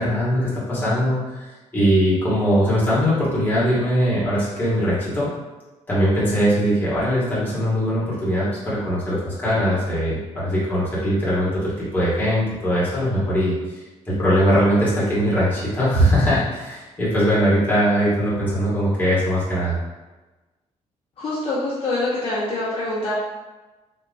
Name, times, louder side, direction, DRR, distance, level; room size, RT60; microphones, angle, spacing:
voice 1, 0.0-1.5 1.7-5.3 5.9-19.7, equal, 15° left, -9 dB, 1.3 m, -21 dB
voice 2, 21.2-23.1, left 2 dB, 50° left, -8 dB, 1.0 m, -25 dB
3.8 x 2.8 x 2.3 m, 1.2 s
cardioid pair, 145°, 13 cm